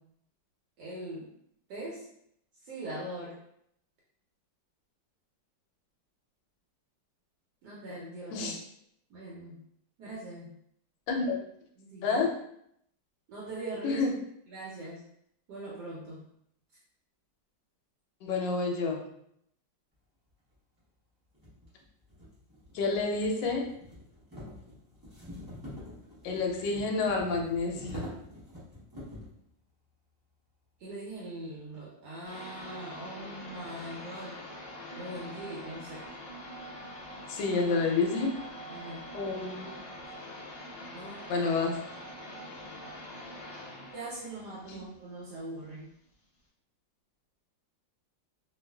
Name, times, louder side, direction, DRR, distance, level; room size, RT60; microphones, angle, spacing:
voice 1, 0.8-1.3 1.7-2.1 2.6-3.4 7.6-8.5 9.1-9.6 10.0-10.5 11.8-12.2 13.3-14.0 14.5-15.0 15.5-16.2 30.8-34.4 34.9-36.1 38.5-39.1 40.9-41.5 42.4-43.3 43.9-45.9, right 1 dB, 70° right, -5 dB, 1.1 m, -42 dB
voice 2, 11.1-11.4 12.0-12.4 13.8-14.2 18.2-19.0 22.7-23.7 26.2-28.0 37.3-38.4 39.1-39.7 41.3-41.8, left 4 dB, 80° left, 1 dB, 1.2 m, -29 dB
sound 1, 20.5-20.6 21.3-29.4, left 1 dB, 35° right, 0.3 m, -46 dB
sound 2, 32.2-45.7, equal, 45° left, 0.4 m, -44 dB
3.0 x 2.3 x 2.2 m, 0.72 s
omnidirectional pair, 2.0 m